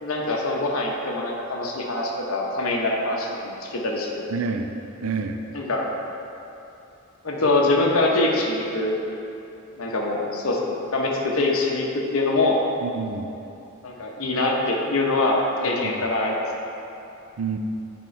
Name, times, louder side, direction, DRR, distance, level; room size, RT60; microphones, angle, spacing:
voice 1, 0.0-4.3 5.5-6.0 7.2-9.0 9.8-12.6 13.8-16.5, left 2 dB, 80° left, -1 dB, 0.9 m, -24 dB
voice 2, 4.3-4.8 5.0-5.4 12.8-13.3 15.6-15.9 17.4-17.6, right 5 dB, 75° right, 6 dB, 0.4 m, -28 dB
8.3 x 3.7 x 4.4 m, 2.8 s
head